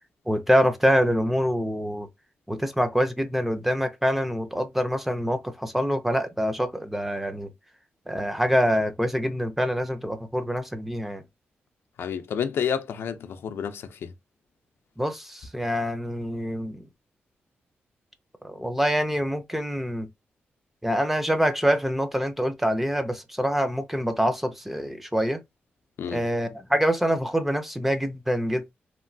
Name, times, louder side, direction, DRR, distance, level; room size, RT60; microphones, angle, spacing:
voice 1, 0.3-2.1 2.5-7.5 8.1-11.2 15.0-16.9 18.4-20.1 20.8-25.4 26.1-28.7, equal, 5° right, 0.4 m, -25 dB
voice 2, 12.0-14.1 26.0-26.2, left 7 dB, 75° left, 0.4 m, -30 dB
2.9 x 2.5 x 2.5 m
wide cardioid pair, 170°, 4 cm